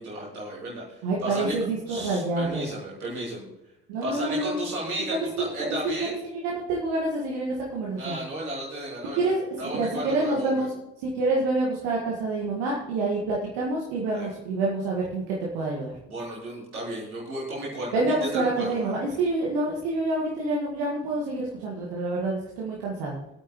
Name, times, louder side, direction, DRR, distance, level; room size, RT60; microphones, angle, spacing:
voice 1, 0.0-1.5 1.9-3.5 4.0-6.2 8.0-9.3 9.6-10.7 14.1-14.3 16.1-19.0, right 1 dB, 85° right, -6 dB, 3.2 m, -34 dB
voice 2, 1.0-2.7 3.9-4.6 5.1-5.5 6.3-8.2 9.2-9.4 9.7-10.7 11.0-15.9 17.9-23.2, right 2 dB, 65° right, -3 dB, 1.9 m, -27 dB
22.5 x 8.9 x 3.1 m, 0.92 s
figure-of-eight pair, 40°, 42 cm